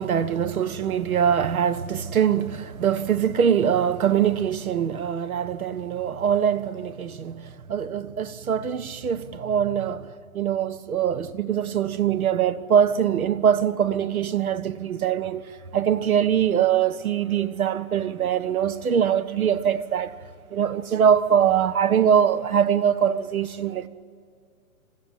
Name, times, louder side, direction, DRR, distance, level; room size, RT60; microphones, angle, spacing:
voice 1, 0.0-10.1 10.3-15.4 15.7-20.1 20.5-23.9, right 8 dB, 75° right, 1.3 m, -23 dB
27.0 x 16.0 x 8.8 m
hypercardioid pair, 160°, 43 cm